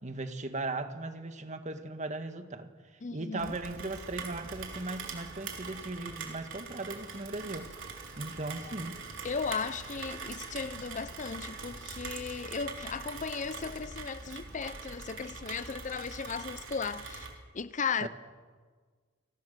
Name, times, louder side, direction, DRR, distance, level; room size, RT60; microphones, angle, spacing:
voice 1, 0.0-9.0 18.0-18.1, right 2 dB, 40° right, 1.8 m, -38 dB
voice 2, 3.0-3.5 8.6-8.7 9.2-18.1, left 5 dB, 40° left, 0.6 m, -36 dB
Rain, 3.4-17.3, right 4 dB, 85° right, 3.5 m, -43 dB
29.0 x 19.0 x 6.8 m
head